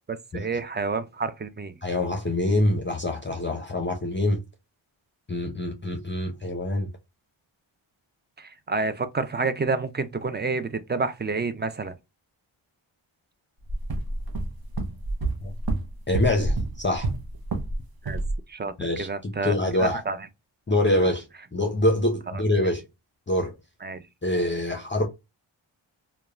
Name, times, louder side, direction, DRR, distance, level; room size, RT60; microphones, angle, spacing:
voice 1, 0.1-1.8 8.4-12.0 18.0-18.2 18.5-20.3 20.9-21.1 22.3-22.4 23.8-24.0, right 4 dB, 25° right, 0.3 m, -29 dB
voice 2, 1.8-4.4 5.3-6.9 15.4-15.5 16.1-17.1 18.8-20.0 20.7-21.2 21.5-22.8 23.3-23.6 24.2-25.1, left 1 dB, 25° left, 0.6 m, -25 dB
sound 1, 13.7-17.8 18.1-18.4, right 2 dB, 45° right, 0.8 m, -28 dB
2.9 x 2.2 x 2.3 m
wide cardioid pair, 60°, 50 cm